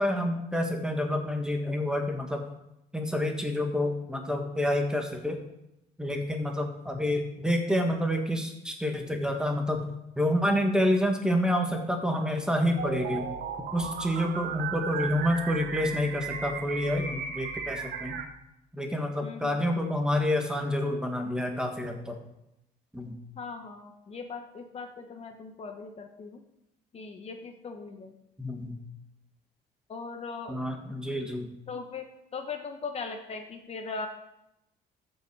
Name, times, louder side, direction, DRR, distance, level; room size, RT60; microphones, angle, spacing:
voice 1, 0.0-2.4 2.9-5.4 6.0-9.9 10.2-13.3 13.7-18.2 18.7-22.2 22.9-23.1 28.4-28.7 30.5-31.5, left 1 dB, 5° right, 3 dB, 1.7 m, -28 dB
sound 1, 12.8-18.3, right 6 dB, 70° right, 1.2 m, -35 dB
voice 2, 19.2-19.7 23.4-26.4 26.9-28.2 29.9-30.6 31.7-34.1, left 4 dB, 40° left, 5 dB, 1.2 m, -39 dB
13.5 x 5.6 x 4.9 m, 0.86 s
cardioid pair, 110°, 17 cm